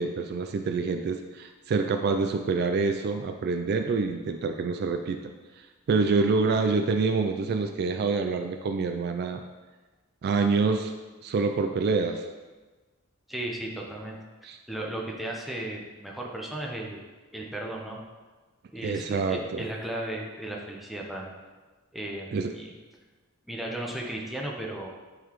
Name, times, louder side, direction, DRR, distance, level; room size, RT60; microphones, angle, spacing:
voice 1, 0.0-5.2 5.9-9.4 10.2-10.9 11.2-12.2 14.4-14.6 18.8-19.6 22.3-22.5, right 4 dB, 50° right, 6 dB, 0.3 m, -26 dB
voice 2, 13.3-14.2 14.7-17.0 17.3-18.0 18.7-21.3 21.9-22.7 23.4-24.9, right 1 dB, ahead, -2 dB, 0.7 m, -35 dB
9.1 x 4.0 x 3.0 m, 1.3 s
head